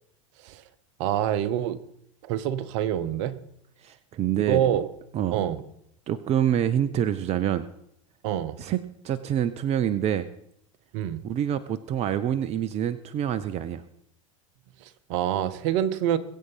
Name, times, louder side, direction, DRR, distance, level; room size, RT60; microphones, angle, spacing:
voice 1, 1.0-1.8 2.2-3.4 4.5-4.9 5.3-5.6 8.2-8.6 10.9-11.2 14.8-16.2, right 10 dB, 60° right, 15 dB, 1.1 m, -26 dB
voice 2, 3.8-4.6 5.1-5.4 6.1-7.7 8.6-10.3 11.2-13.8, right 10 dB, 40° right, 13 dB, 0.8 m, -26 dB
22.5 x 8.1 x 5.6 m, 0.74 s
hypercardioid pair, 90°, 17 cm